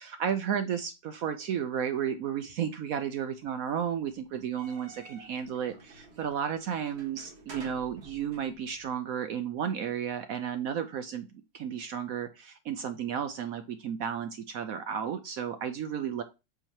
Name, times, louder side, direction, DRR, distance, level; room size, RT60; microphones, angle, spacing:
voice 1, 0.0-11.3 11.5-16.2, right 8 dB, 70° right, 9 dB, 0.9 m, -33 dB
sound 1, 4.3-8.9, right 3 dB, 40° right, 1.4 m, -51 dB
7.8 x 2.9 x 4.4 m, 0.26 s
omnidirectional pair, 1.9 m